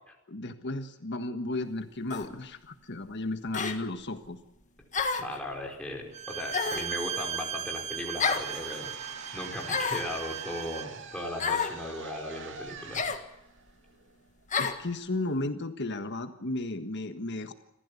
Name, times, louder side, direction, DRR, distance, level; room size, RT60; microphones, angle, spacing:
voice 1, 0.3-4.4 14.6-17.5, left 2 dB, 55° left, 8 dB, 1.5 m, -34 dB
sound 1, 2.1-2.3 3.5-3.8 4.9-5.4 6.5-6.9 8.2-8.5 9.7-10.1 11.4-11.8 12.9-13.2 14.5-14.8, left 5 dB, 35° left, 1.7 m, -29 dB
voice 2, 5.2-13.0, left 1 dB, 5° left, -1 dB, 4.7 m, -37 dB
Bowed string instrument, 6.1-11.0, right 9 dB, 30° right, 0.8 m, -37 dB
sound 2, 8.3-14.4, right 4 dB, 60° right, 2.6 m, -45 dB
27.5 x 15.0 x 8.4 m, 0.87 s
head